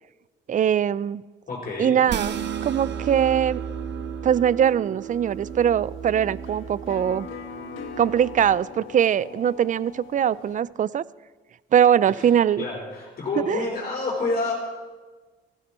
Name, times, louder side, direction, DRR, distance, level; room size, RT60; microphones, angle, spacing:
voice 1, 0.5-1.2 1.8-3.6 4.2-7.3 8.0-11.0 11.7-12.6 13.5-13.7, right 9 dB, 40° right, 20 dB, 0.4 m, -21 dB
voice 2, 1.5-2.0 12.1-12.3 12.6-14.5, left 3 dB, 45° left, -5 dB, 4.6 m, -28 dB
sound 1, 2.1-8.6, right 7 dB, 60° right, 1.2 m, -34 dB
sound 2, 5.0-10.6, left 7 dB, 85° left, 1.4 m, -42 dB
16.5 x 14.5 x 4.3 m, 1.3 s
cardioid pair, 90°, 20 cm